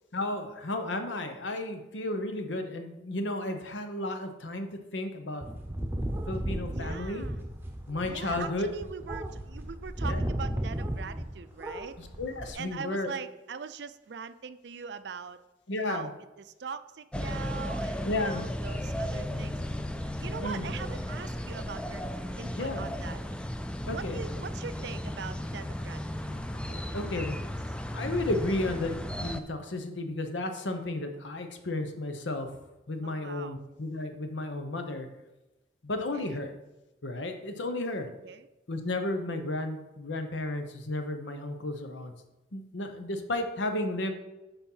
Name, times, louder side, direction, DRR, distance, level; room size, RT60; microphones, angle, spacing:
voice 1, 0.1-5.4 6.3-7.2 7.9-8.7 10.1-10.2 12.0-13.1 15.7-16.1 18.0-18.4 20.4-20.7 22.6-22.9 23.9-24.2 26.9-27.4 27.9-32.5 32.9-35.1 35.8-36.5 37.0-38.1 38.7-42.1 42.5-44.1, left 2 dB, 90° left, 6 dB, 1.0 m, -33 dB
sound 1, 5.4-11.3 11.6-12.5, right 1 dB, 10° right, 0.7 m, -34 dB
voice 2, 6.7-7.4 8.1-12.0 12.5-15.4 15.9-19.6 20.2-22.0 22.4-23.2 23.9-27.4 33.0-33.6 36.1-36.4 38.2-38.5, right 6 dB, 70° right, 13 dB, 0.5 m, -42 dB
sound 2, 17.1-29.4, left 1 dB, 5° left, 0.3 m, -35 dB
7.0 x 5.4 x 5.6 m, 1.0 s
head